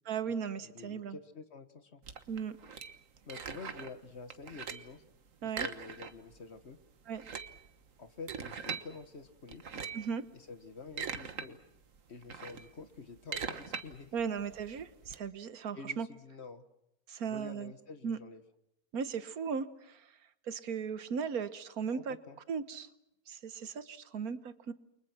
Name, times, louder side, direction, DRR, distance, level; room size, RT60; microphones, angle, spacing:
voice 1, 0.1-1.2 2.3-2.6 5.4-5.7 7.1-7.2 9.9-10.2 14.1-16.1 17.1-17.7 18.0-18.2 18.9-20.2 20.5-22.2 22.5-22.9 23.3-24.7, right 6 dB, 85° right, 13 dB, 1.6 m, -37 dB
voice 2, 0.6-2.0 3.3-5.0 5.4-6.8 8.0-9.6 10.3-11.6 12.1-14.1 15.7-16.6 17.2-18.4 21.9-22.4, left 4 dB, 50° left, 10 dB, 1.7 m, -48 dB
sound 1, 2.0-4.0 4.3-5.0 5.5-6.4 6.6-6.7 7.1-8.9 9.5-10.1 10.6-11.5 11.8-15.2, right 6 dB, 60° right, 1.7 m, -41 dB
29.5 x 24.0 x 6.0 m, 0.86 s
omnidirectional pair, 1.5 m